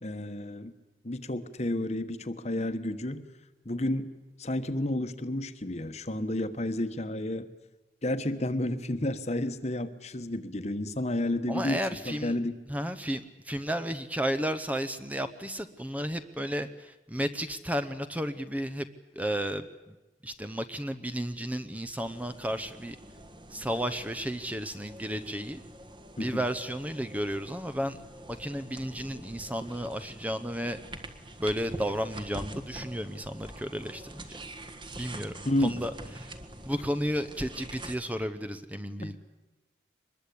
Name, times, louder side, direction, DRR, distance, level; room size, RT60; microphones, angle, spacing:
voice 1, 0.0-0.7 1.0-3.2 3.6-4.1 4.4-7.5 8.0-11.8 12.0-12.5 26.2-26.4 35.4-35.8 39.0-39.2, left 1 dB, 40° left, 11 dB, 1.2 m, -31 dB
voice 2, 11.5-12.4 12.7-18.9 19.1-20.0 20.2-23.0 23.5-25.6 26.2-28.0 28.3-30.8 31.4-34.4 35.0-35.9 36.2-36.3 36.6-39.2, equal, 10° right, 10 dB, 0.8 m, -33 dB
sound 1, 22.0-38.0, right 1 dB, 25° right, 1.6 m, -45 dB
24.5 x 21.5 x 8.6 m, 1.1 s
head